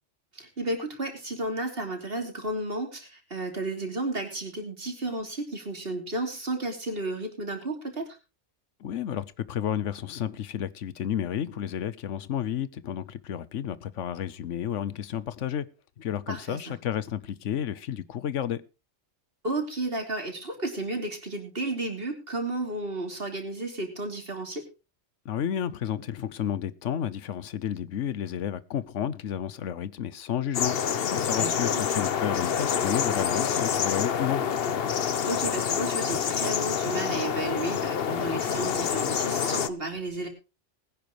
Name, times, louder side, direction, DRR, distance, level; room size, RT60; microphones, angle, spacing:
voice 1, 0.3-8.2 16.3-16.7 19.4-24.6 31.4-31.9 35.0-40.3, right 2 dB, 55° right, 3.2 m, -33 dB
voice 2, 8.8-15.7 16.0-18.6 25.2-30.8 31.1-34.4, left 10 dB, 90° left, 1.1 m, -31 dB
sound 1, 30.5-39.7, left 7 dB, 60° left, 1.0 m, -27 dB
20.5 x 10.5 x 3.1 m
omnidirectional pair, 1.2 m